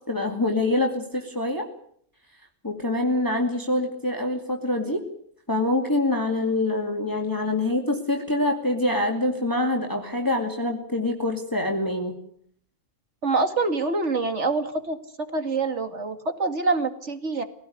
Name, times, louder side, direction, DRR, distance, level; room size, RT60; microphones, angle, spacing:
voice 1, 0.1-1.7 2.6-5.0 5.5-12.1, left 2 dB, 15° left, 2 dB, 2.5 m, -25 dB
voice 2, 13.2-15.0 15.3-17.4, right 3 dB, 55° right, 8 dB, 2.6 m, -25 dB
23.0 x 18.0 x 9.5 m, 0.64 s
omnidirectional pair, 1.4 m